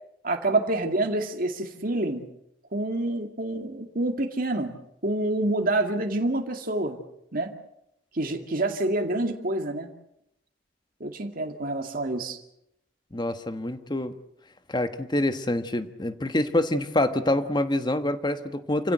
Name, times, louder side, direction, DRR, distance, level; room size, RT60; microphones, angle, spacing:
voice 1, 0.2-2.2 2.7-4.7 5.0-7.0 7.3-7.5 8.1-9.9 11.0-12.4, right 2 dB, 50° right, 4 dB, 2.2 m, -27 dB
voice 2, 13.1-14.2 14.7-18.9, left 1 dB, 25° left, 9 dB, 1.4 m, -26 dB
28.5 x 16.0 x 8.0 m, 0.80 s
head